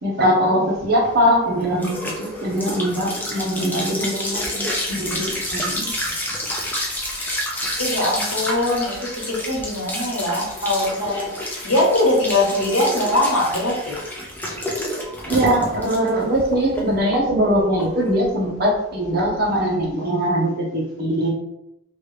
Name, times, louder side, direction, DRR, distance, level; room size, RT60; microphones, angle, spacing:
voice 1, 0.0-6.1 15.3-21.3, equal, 45° right, -2 dB, 0.8 m, -21 dB
sound 1, 0.8-19.9, left 1 dB, 10° left, 0.4 m, -29 dB
voice 2, 7.8-13.9 15.0-15.1, left 1 dB, 90° left, -3 dB, 1.2 m, -22 dB
3.0 x 2.4 x 3.2 m, 0.83 s
head